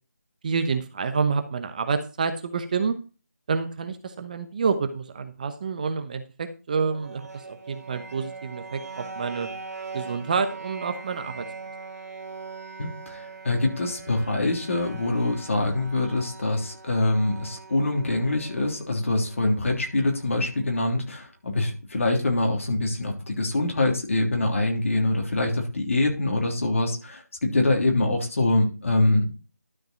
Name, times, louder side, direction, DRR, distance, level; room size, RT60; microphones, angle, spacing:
voice 1, 0.4-3.0 3.5-9.5 9.9-11.5, right 5 dB, 30° right, 9 dB, 0.9 m, -28 dB
sound 1, 6.8-20.7, right 4 dB, 60° right, 2.4 m, -42 dB
voice 2, 12.8-29.3, left 2 dB, 50° left, 1 dB, 3.2 m, -24 dB
12.5 x 5.2 x 4.4 m, 0.33 s
figure-of-eight pair, 165°, 9 cm